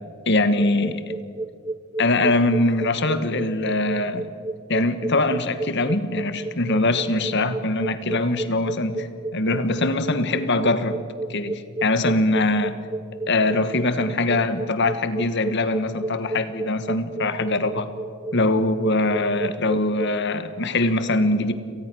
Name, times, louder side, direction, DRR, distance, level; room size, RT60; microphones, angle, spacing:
voice 1, 0.3-1.1 2.0-4.3 4.7-11.0 11.3-12.8 13.3-17.9 18.3-21.5, left 2 dB, 55° left, 11 dB, 1.4 m, -22 dB
sound 1, 0.6-20.3, right 2 dB, 15° right, 0.5 m, -32 dB
30.0 x 19.0 x 6.3 m, 2.4 s
head